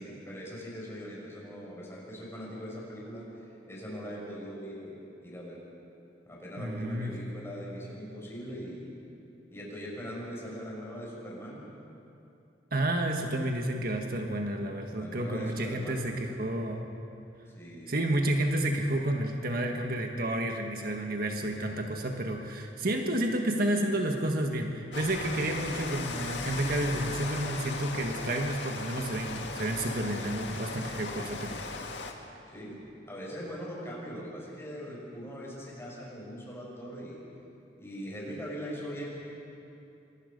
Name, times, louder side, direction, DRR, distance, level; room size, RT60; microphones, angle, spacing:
voice 1, 0.0-5.0 5.2-5.6 6.3-8.9 9.5-11.7 14.9-16.2 17.5-18.0 32.5-37.2 37.8-39.1, equal, 15° left, -4 dB, 6.3 m, -41 dB
voice 2, 6.6-7.2 12.7-16.9 17.9-31.6, right 1 dB, 55° right, 3 dB, 1.6 m, -30 dB
Rain, 24.9-32.1, left 3 dB, 85° left, 1.9 m, -37 dB
26.5 x 22.5 x 5.3 m, 2.7 s
head